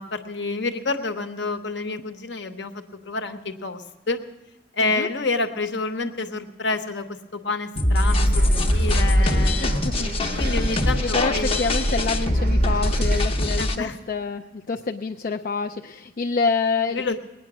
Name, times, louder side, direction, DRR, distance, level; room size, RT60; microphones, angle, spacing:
voice 1, 0.0-4.2 4.7-7.1 7.3-8.3 8.6-9.8 10.4-11.6 13.6-14.0 16.9-17.2, left 3 dB, 60° left, 7 dB, 1.0 m, -28 dB
sound 1, 7.8-13.8, left 1 dB, 30° left, 0.9 m, -22 dB
sound 2, 8.0-13.3, right 1 dB, 50° right, 0.6 m, -27 dB
voice 2, 9.6-10.1 11.0-17.2, left 4 dB, 45° left, 3 dB, 0.4 m, -27 dB
20.5 x 9.4 x 6.1 m, 1.0 s
head